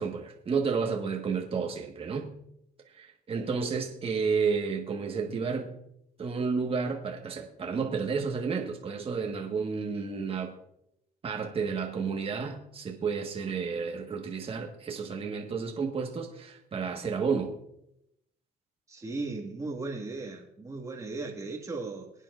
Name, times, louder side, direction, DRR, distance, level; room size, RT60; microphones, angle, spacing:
voice 1, 0.0-2.3 2.9-5.7 6.2-10.5 11.2-17.5, right 5 dB, 35° right, 1 dB, 1.5 m, -31 dB
voice 2, 18.9-22.1, right 3 dB, 20° right, -1 dB, 2.0 m, -36 dB
22.5 x 9.1 x 2.5 m, 0.79 s
cardioid pair, 110°, 17 cm